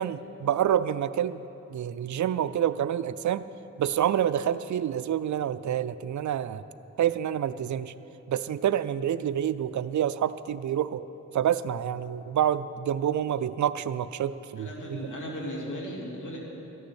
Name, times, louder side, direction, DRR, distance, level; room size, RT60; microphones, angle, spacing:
voice 1, 0.0-1.4 1.7-3.4 3.8-6.6 7.0-7.9 8.3-11.0 11.3-15.0, right 10 dB, 70° right, 14 dB, 0.5 m, -27 dB
voice 2, 14.6-16.4, equal, 75° left, -3 dB, 2.7 m, -36 dB
14.0 x 6.6 x 9.7 m, 2.9 s
cardioid pair, 45°, 31 cm